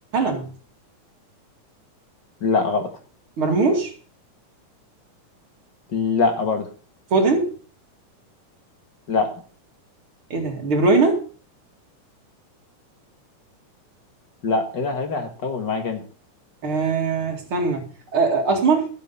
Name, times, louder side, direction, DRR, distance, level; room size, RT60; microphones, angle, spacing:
voice 1, 0.1-0.5 3.4-3.9 7.1-7.6 10.3-11.2 16.6-18.9, right 3 dB, 40° right, 1 dB, 2.9 m, -21 dB
voice 2, 2.4-2.9 5.9-6.7 9.1-9.3 14.4-16.0, left 4 dB, 40° left, 5 dB, 1.9 m, -23 dB
12.5 x 8.2 x 5.6 m, 0.40 s
omnidirectional pair, 3.8 m